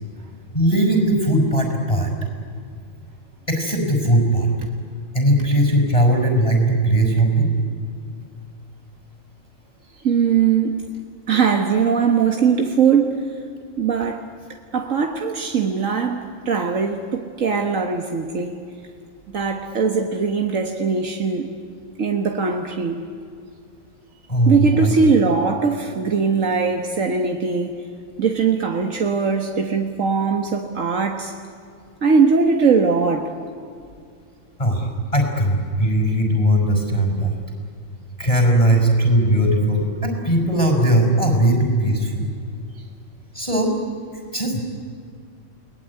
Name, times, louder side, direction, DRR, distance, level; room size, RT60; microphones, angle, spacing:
voice 1, 0.5-2.1 3.5-4.5 5.1-7.5 24.3-24.9 34.6-37.4 38.2-42.3 43.3-43.7 44.1-44.6, right 1 dB, 25° left, 3 dB, 5.7 m, -19 dB
voice 2, 10.0-10.9 11.3-13.4 13.8-18.5 19.3-21.5 22.0-23.0 24.5-27.7 28.2-31.3 32.0-33.3, right 5 dB, 75° right, 4 dB, 1.8 m, -20 dB
29.0 x 20.0 x 9.8 m, 2.3 s
omnidirectional pair, 1.4 m